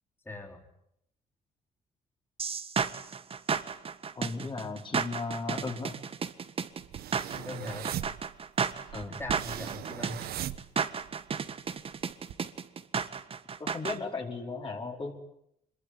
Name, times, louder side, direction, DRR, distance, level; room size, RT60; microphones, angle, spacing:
voice 1, 0.2-0.7 7.3-7.9 9.1-10.2, left 2 dB, 15° left, 0 dB, 4.7 m, -40 dB
sound 1, 2.4-14.0, right 6 dB, 40° right, 1.7 m, -33 dB
voice 2, 4.1-6.0 8.9-9.2 13.6-15.1, left 4 dB, 30° left, 1 dB, 4.8 m, -36 dB
sound 2, 6.8-11.3 11.7-12.3, right 12 dB, 85° right, 1.4 m, -39 dB
26.0 x 22.0 x 9.8 m, 0.78 s
cardioid pair, 115°, 15 cm